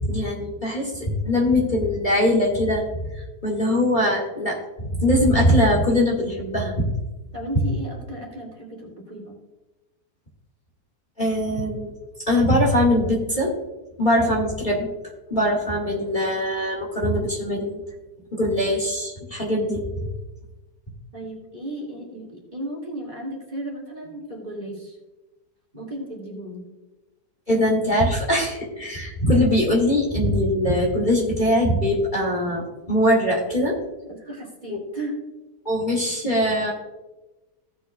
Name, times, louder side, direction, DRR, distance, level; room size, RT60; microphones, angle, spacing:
voice 1, 0.0-2.8 3.2-6.9 11.2-11.9 12.3-13.5 14.0-14.9 15.3-17.8 18.3-20.1 27.5-33.8 34.7-34.8 35.7-36.7, left 1 dB, 30° left, -2 dB, 2.1 m, -22 dB
voice 2, 7.3-9.4 21.1-25.0 25.7-26.6 34.1-35.2, right 1 dB, 25° right, -2 dB, 2.5 m, -35 dB
16.0 x 8.0 x 2.3 m, 1.1 s
omnidirectional pair, 1.8 m